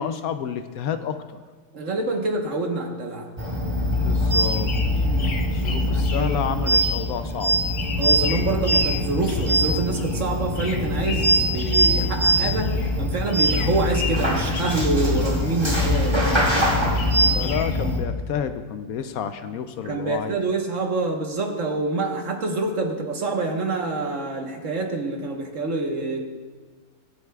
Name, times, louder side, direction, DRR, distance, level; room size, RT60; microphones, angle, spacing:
voice 1, 0.0-1.4 4.0-4.7 5.5-7.6 17.3-20.3, left 8 dB, 70° left, 9 dB, 0.9 m, -30 dB
voice 2, 1.7-3.3 5.0-5.4 5.7-6.3 8.0-17.0 19.8-26.2, right 3 dB, 50° right, 2 dB, 1.5 m, -27 dB
sound 1, 3.4-18.0, equal, 15° right, 2.0 m, -22 dB
sound 2, 3.9-13.0 13.2-15.5 15.8-17.8, left 4 dB, 90° left, 1.7 m, -37 dB
23.5 x 7.9 x 2.4 m, 1.5 s
omnidirectional pair, 1.8 m